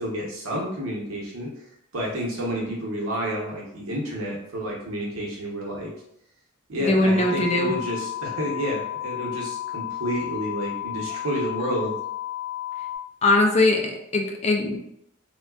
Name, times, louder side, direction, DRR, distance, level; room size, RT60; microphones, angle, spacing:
voice 1, 0.0-1.6 1.9-5.9 6.7-11.9, equal, 80° right, -3 dB, 0.9 m, -30 dB
voice 2, 6.8-7.7 13.2-14.8, left 2 dB, 30° left, 3 dB, 0.3 m, -21 dB
sound 1, 7.1-13.0, left 14 dB, 40° right, 0.7 m, -33 dB
3.6 x 2.3 x 2.3 m, 0.77 s
head